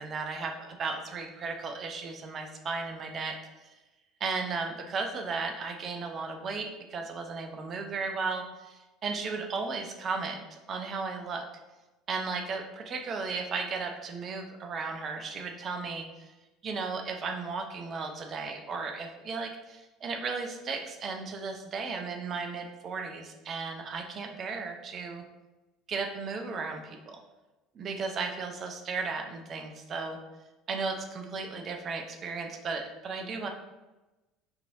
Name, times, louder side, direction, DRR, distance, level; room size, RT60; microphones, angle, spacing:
voice 1, 0.0-3.4 3.6-3.7 4.2-11.5 12.1-16.3 16.6-25.2 25.9-27.2 27.7-30.2 30.7-33.5, right 4 dB, 40° right, 4 dB, 0.6 m, -35 dB
5.7 x 3.0 x 2.7 m, 1.1 s
figure-of-eight pair, 65°, 0 cm